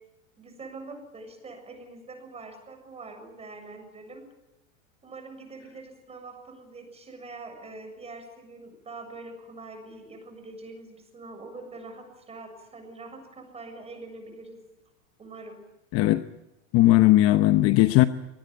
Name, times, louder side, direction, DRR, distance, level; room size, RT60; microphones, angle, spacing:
voice 1, 0.4-4.2 5.0-14.6 15.2-15.6, right 3 dB, 15° right, 5 dB, 7.1 m, -44 dB
voice 2, 16.7-18.0, left 16 dB, 35° left, 11 dB, 0.9 m, -18 dB
24.0 x 19.5 x 9.4 m, 0.98 s
supercardioid pair, 135°, 39 cm